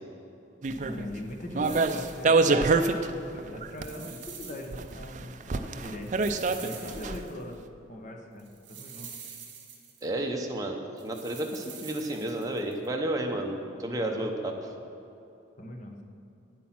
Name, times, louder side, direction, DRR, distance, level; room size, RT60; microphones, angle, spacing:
sound 1, 0.6-1.1 1.5-3.1 3.4-4.2 4.7-7.2, right 3 dB, 40° right, 0.4 m, -26 dB
voice 1, 0.8-6.1 6.6-7.6 7.9-9.2 13.9-14.3 15.6-16.0, left 1 dB, 40° left, 2 dB, 1.0 m, -41 dB
sound 2, 1.6-2.7 3.7-5.1 5.3-5.4 6.0-7.5 8.4-10.2 11.0-12.9, right 7 dB, 55° right, 1.7 m, -46 dB
voice 2, 10.0-14.5, right 1 dB, 20° right, 1 dB, 0.8 m, -31 dB
9.4 x 8.3 x 5.9 m, 2.7 s
head